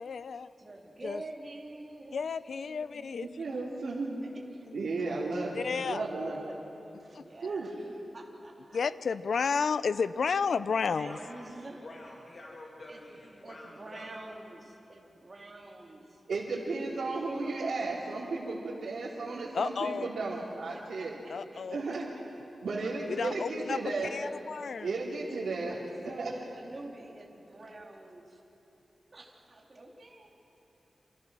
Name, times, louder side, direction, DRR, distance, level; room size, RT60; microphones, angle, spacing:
voice 1, 0.0-0.5 1.0-1.2 2.1-3.3 4.7-4.9 5.5-6.1 7.1-7.2 8.7-11.2 19.5-20.1 21.3-21.8 23.1-24.9, left 5 dB, 70° left, 15 dB, 0.6 m, -32 dB
voice 2, 0.6-4.3 5.9-6.6 7.0-7.7 8.1-8.8 10.8-11.8 12.9-16.2 17.0-18.0 20.9-21.6 22.1-22.2 23.2-24.3 25.7-28.4 29.1-30.3, right 2 dB, 30° right, -1 dB, 2.9 m, -48 dB
voice 3, 3.4-4.2 4.7-6.4 7.4-7.9 16.3-21.2 21.7-22.0 22.6-24.1 24.8-25.8 26.2-26.3, right 3 dB, 80° right, -6 dB, 3.1 m, -34 dB
voice 4, 11.0-14.1, left 1 dB, 40° left, -2 dB, 2.3 m, -48 dB
27.5 x 27.0 x 6.2 m, 3.0 s
wide cardioid pair, 180°, 0 cm